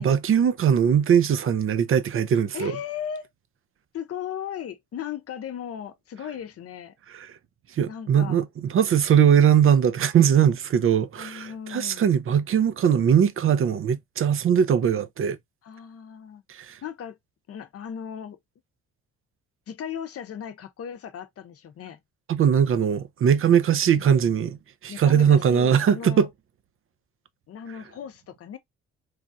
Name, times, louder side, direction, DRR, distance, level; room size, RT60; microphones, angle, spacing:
voice 1, 0.0-2.8 7.1-7.4 7.7-15.4 16.5-16.8 22.3-24.6 24.8-26.3, right 8 dB, 45° right, 0.4 m, -20 dB
voice 2, 2.5-3.3 3.9-6.9 7.9-8.4 11.2-12.1 15.6-16.4 16.8-17.2 17.5-18.4 19.7-22.0 23.9-24.1 24.9-26.3 27.5-28.6, left 8 dB, 50° left, 0.6 m, -37 dB
3.2 x 2.3 x 2.5 m
cardioid pair, 90°, 30 cm